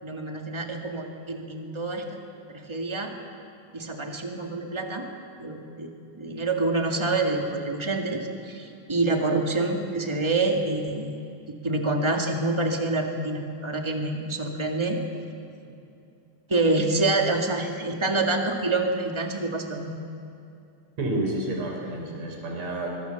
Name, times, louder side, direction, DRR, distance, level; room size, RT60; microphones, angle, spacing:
voice 1, 0.0-2.2 2.5-3.1 3.7-5.1 5.4-11.2 11.5-15.0 16.5-20.0, right 2 dB, 15° right, 2 dB, 1.0 m, -27 dB
voice 2, 21.0-22.9, right 1 dB, 45° right, 1 dB, 5.7 m, -29 dB
24.5 x 23.5 x 7.1 m, 2.7 s
omnidirectional pair, 4.3 m